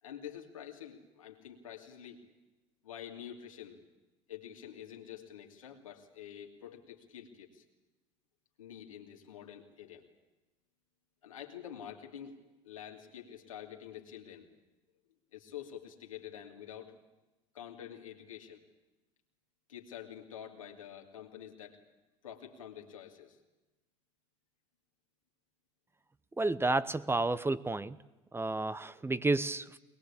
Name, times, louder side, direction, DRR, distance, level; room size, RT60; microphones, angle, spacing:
voice 1, 0.0-2.2 2.8-3.8 4.3-7.6 8.6-10.0 11.2-12.3 12.6-14.5 15.3-16.9 17.5-18.6 19.7-21.8 22.2-23.4, left 9 dB, 85° left, 2 dB, 2.8 m, -47 dB
voice 2, 26.4-28.0 28.3-29.8, right 2 dB, 15° right, 15 dB, 0.9 m, -31 dB
22.0 x 21.0 x 8.8 m, 1.1 s
hypercardioid pair, 70°, 17 cm